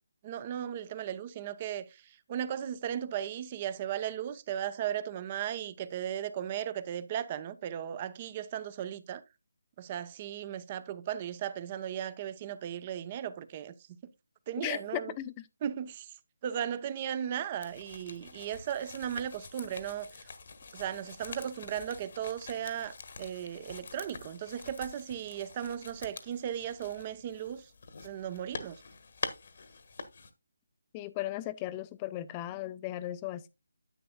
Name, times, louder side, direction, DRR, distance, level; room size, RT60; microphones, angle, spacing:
voice 1, 0.2-1.8 2.3-9.2 9.8-13.7 14.5-15.1 15.6-16.1 16.4-20.1 20.7-27.6 28.0-28.8, right 10 dB, 25° right, 0.7 m, -36 dB
voice 2, 14.6-15.3 30.9-33.5, left 14 dB, 20° left, 0.5 m, -36 dB
sound 1, 17.6-30.3, left 4 dB, 50° left, 1.2 m, -46 dB
10.0 x 8.6 x 2.2 m
figure-of-eight pair, 155°, 0 cm